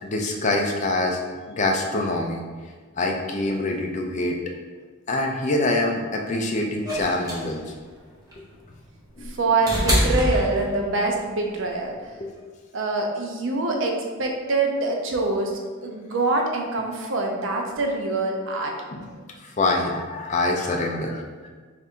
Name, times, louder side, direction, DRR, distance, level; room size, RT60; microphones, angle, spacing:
voice 1, 0.0-1.2 1.5-2.4 3.0-4.4 5.1-7.6 9.2-9.3 12.2-12.3 18.9-19.0 19.4-21.2, left 2 dB, 35° left, 2 dB, 0.4 m, -25 dB
sound 1, 6.9-11.1 12.4-12.5, equal, 15° right, 0.9 m, -25 dB
voice 2, 9.2-12.0 12.7-19.0, right 3 dB, 60° right, 2 dB, 0.6 m, -25 dB
3.5 x 2.5 x 4.2 m, 1.5 s
head